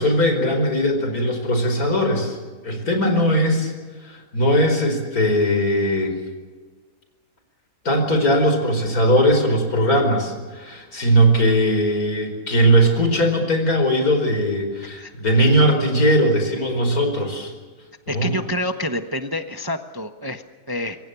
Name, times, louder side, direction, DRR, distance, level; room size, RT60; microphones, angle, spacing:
voice 1, 0.0-2.4 2.6-3.7 4.0-6.1 7.9-17.5 18.1-18.3, equal, 70° left, 5 dB, 5.4 m, -19 dB
voice 2, 18.1-21.0, left 1 dB, 15° right, 7 dB, 1.0 m, -28 dB
26.0 x 23.0 x 6.9 m, 1.4 s
omnidirectional pair, 1.6 m